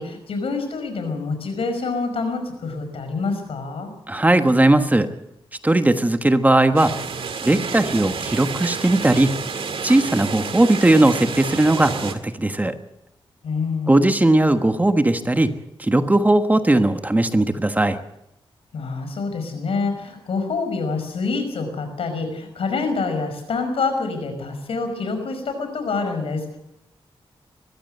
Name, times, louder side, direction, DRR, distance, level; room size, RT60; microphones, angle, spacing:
voice 1, 0.0-3.9 13.4-14.2 18.7-26.6, left 4 dB, 85° left, 7 dB, 5.5 m, -26 dB
voice 2, 4.1-5.1 5.6-6.9 7.4-9.4 9.8-12.8 13.9-15.5 15.8-18.0, right 2 dB, 15° right, 8 dB, 1.3 m, -18 dB
sound 1, 6.8-12.2, right 5 dB, 75° right, 1.9 m, -30 dB
22.0 x 15.0 x 7.9 m, 0.84 s
wide cardioid pair, 95°, 10 cm